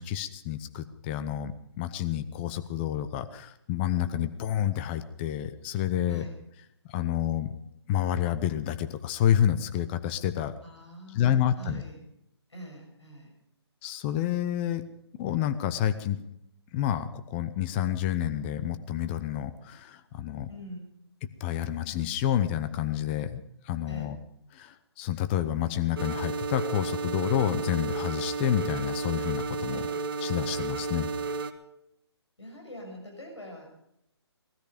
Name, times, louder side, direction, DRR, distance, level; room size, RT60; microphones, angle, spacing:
voice 1, 0.0-6.2 6.9-7.5 7.9-10.5 11.1-11.8 13.8-14.8 15.2-16.2 16.7-20.5 21.4-24.2 24.5-29.8 30.2-31.1, left 11 dB, 25° left, 11 dB, 0.9 m, -29 dB
voice 2, 10.6-12.0 12.5-13.3 20.5-20.9 23.9-24.1 29.7-30.0 32.4-33.7, equal, 85° left, 1 dB, 6.5 m, -43 dB
sound 1, 26.0-31.5, right 4 dB, 55° right, 1.6 m, -32 dB
19.0 x 13.5 x 5.1 m, 0.78 s
figure-of-eight pair, 145°, 14 cm